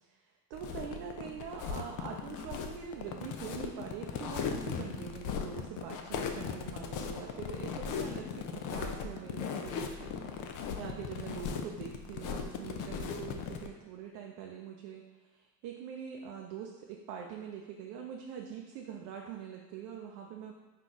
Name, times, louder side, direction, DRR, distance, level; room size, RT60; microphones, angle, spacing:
sound 1, 0.5-13.7, left 6 dB, 45° left, 0.5 m, -38 dB
voice 1, 0.5-20.5, right 7 dB, 55° right, 1 dB, 0.6 m, -44 dB
4.5 x 2.4 x 3.8 m, 1.3 s
hypercardioid pair, 60°, 46 cm